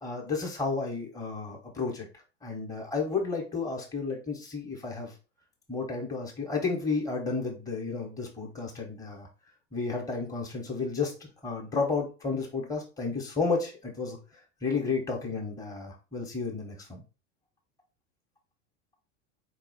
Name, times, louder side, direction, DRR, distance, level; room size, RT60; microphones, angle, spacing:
voice 1, 0.0-5.1 5.7-9.3 9.7-14.2 14.6-17.0, left 4 dB, 10° left, 0 dB, 1.1 m, -32 dB
4.2 x 2.3 x 4.1 m, 0.33 s
hypercardioid pair, 100°, 37 cm